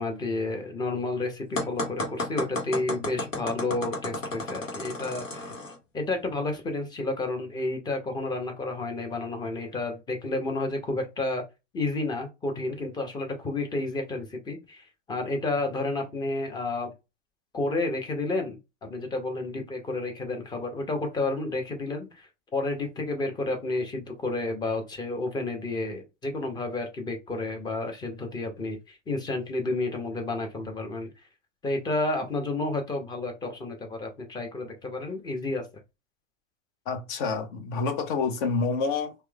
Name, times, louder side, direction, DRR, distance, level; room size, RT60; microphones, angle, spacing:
voice 1, 0.0-5.5 5.9-11.4 11.7-16.9 17.5-31.1 31.6-35.6, left 2 dB, 10° left, 0.7 m, -31 dB
sound 1, 1.6-5.8, left 2 dB, 75° left, 1.0 m, -33 dB
voice 2, 36.9-39.1, left 4 dB, 40° left, 0.7 m, -28 dB
4.4 x 2.1 x 2.2 m
figure-of-eight pair, 95°, 39 cm